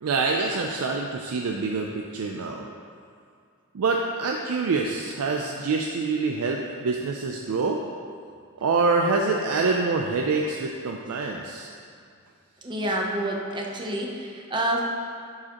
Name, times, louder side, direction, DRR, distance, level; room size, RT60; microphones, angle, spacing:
voice 1, 0.0-2.7 3.7-7.8 8.6-11.7, right 4 dB, 80° right, 1 dB, 0.4 m, -26 dB
voice 2, 12.6-14.8, right 1 dB, 20° right, -1 dB, 0.7 m, -28 dB
10.5 x 4.8 x 2.9 m, 2.2 s
head